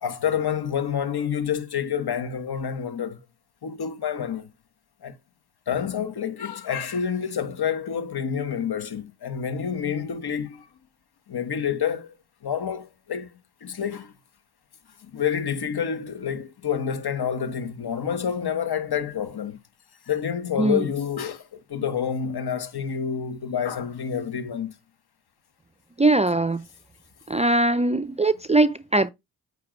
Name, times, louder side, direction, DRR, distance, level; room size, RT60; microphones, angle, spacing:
voice 1, 0.0-3.2 3.6-4.5 5.0-5.1 5.7-10.7 11.3-12.1 12.4-13.3 13.6-14.1 15.0-19.6 20.1-24.7, left 8 dB, 55° left, 1.3 m, -28 dB
voice 2, 26.0-26.6 27.3-29.1, right 2 dB, 15° right, 0.4 m, -21 dB
8.7 x 3.3 x 5.1 m
supercardioid pair, 45°, 46 cm